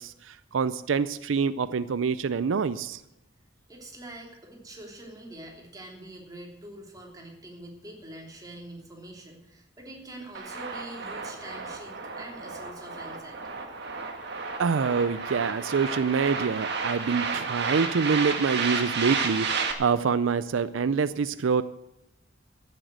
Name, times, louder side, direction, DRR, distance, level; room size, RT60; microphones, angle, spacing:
voice 1, 0.0-3.0 14.6-21.6, right 5 dB, 90° right, 15 dB, 0.5 m, -26 dB
voice 2, 3.7-13.4, right 1 dB, 20° right, -1 dB, 3.1 m, -44 dB
sound 1, 10.3-19.7, right 5 dB, 60° right, 1.7 m, -32 dB
14.5 x 7.6 x 8.0 m, 0.85 s
head